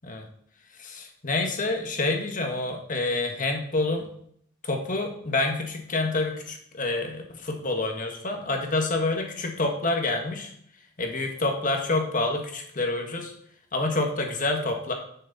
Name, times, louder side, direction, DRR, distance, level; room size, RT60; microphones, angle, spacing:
voice 1, 0.8-4.1 4.6-10.5 11.0-13.3 13.7-14.9, left 2 dB, 45° left, 3 dB, 1.6 m, -27 dB
10.5 x 6.6 x 4.2 m, 0.67 s
head